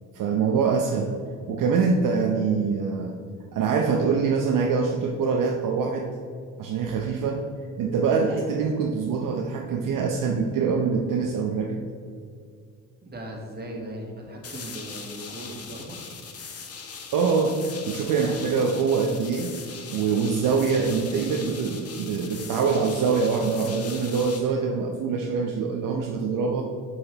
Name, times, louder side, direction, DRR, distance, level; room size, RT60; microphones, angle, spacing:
voice 1, 0.1-1.2 1.5-3.2 3.5-6.1 6.6-7.5 7.8-11.8 17.1-19.6 19.9-26.6, right 5 dB, 60° right, 1 dB, 0.7 m, -24 dB
voice 2, 13.0-16.0, right 1 dB, 25° right, 0 dB, 1.8 m, -38 dB
sound 1, 14.4-24.4, left 5 dB, 40° left, 1.0 m, -40 dB
7.1 x 4.9 x 3.9 m, 2.2 s
supercardioid pair, 65°, 36 cm